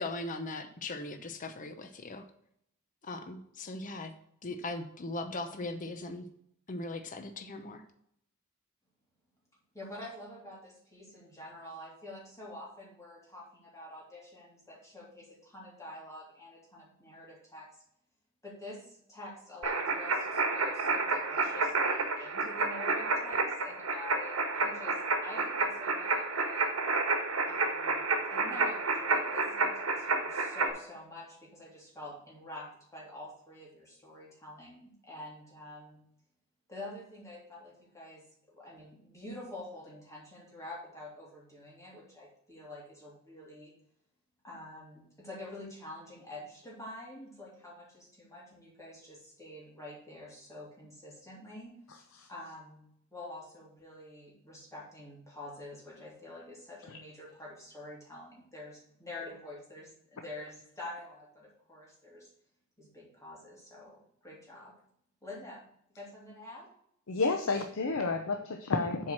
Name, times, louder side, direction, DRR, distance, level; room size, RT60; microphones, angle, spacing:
voice 1, 0.0-2.3 3.0-4.1 4.4-6.3 6.7-7.8, left 2 dB, 40° left, 7 dB, 0.7 m, -39 dB
voice 2, 9.7-17.7 18.4-26.7 27.4-28.0 28.3-36.0 36.7-43.7 44.4-51.8 52.3-52.8 53.1-62.3 62.8-64.7 65.2-65.6 65.9-66.7, left 1 dB, 15° left, -4 dB, 3.1 m, -47 dB
sound 1, 19.6-30.7, right 3 dB, 80° right, 1.4 m, -30 dB
voice 3, 67.1-69.1, left 3 dB, 70° left, 6 dB, 0.7 m, -30 dB
7.3 x 4.7 x 6.1 m, 0.70 s
head